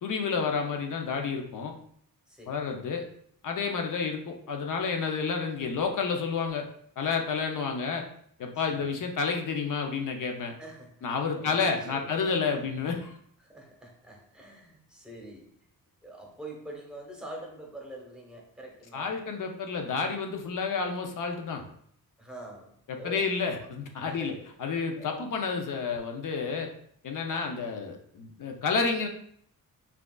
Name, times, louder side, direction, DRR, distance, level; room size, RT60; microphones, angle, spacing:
voice 1, 0.0-1.7 2.5-3.1 3.4-6.7 7.0-8.0 8.4-10.5 11.0-13.2 18.9-21.6 22.9-24.3 24.6-26.7 27.0-29.1, left 5 dB, 60° left, 3 dB, 0.7 m, -30 dB
voice 2, 2.3-2.8 8.5-9.0 10.6-12.7 13.4-15.5 16.0-19.2 22.2-23.3 24.0-24.4 25.0-25.3 27.3-27.5, right 1 dB, ahead, -1 dB, 0.9 m, -45 dB
5.7 x 2.5 x 2.3 m, 0.64 s
wide cardioid pair, 140°, 36 cm